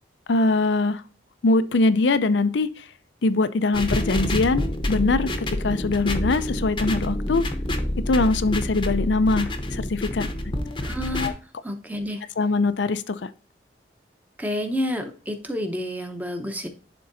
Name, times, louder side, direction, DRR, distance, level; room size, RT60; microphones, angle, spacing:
voice 1, 0.3-1.0 1.4-2.9 3.2-7.5 8.0-10.3 11.2-11.3 12.4-13.3, left 3 dB, 75° left, 13 dB, 0.5 m, -22 dB
sound 1, 3.7-11.3, left 1 dB, 25° left, 0.8 m, -27 dB
voice 2, 10.8-11.3 11.6-12.2 14.4-16.7, left 1 dB, 10° right, 5 dB, 0.9 m, -29 dB
11.0 x 3.8 x 2.6 m, 0.39 s
head